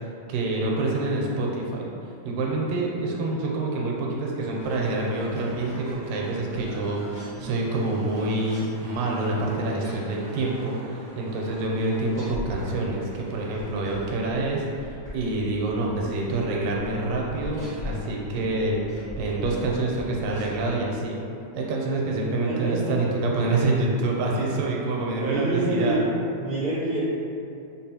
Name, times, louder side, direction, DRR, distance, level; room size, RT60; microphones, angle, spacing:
voice 1, 0.3-1.9 2.3-18.8 19.2-21.2 21.5-26.0, right 2 dB, 85° right, -2 dB, 2.1 m, -27 dB
sound 1, 4.5-20.7, left 1 dB, 55° left, 0.6 m, -41 dB
voice 2, 22.2-23.1 24.2-24.8 25.2-27.0, right 1 dB, 75° left, -16 dB, 0.9 m, -28 dB
5.4 x 2.1 x 2.7 m, 2.6 s
omnidirectional pair, 3.8 m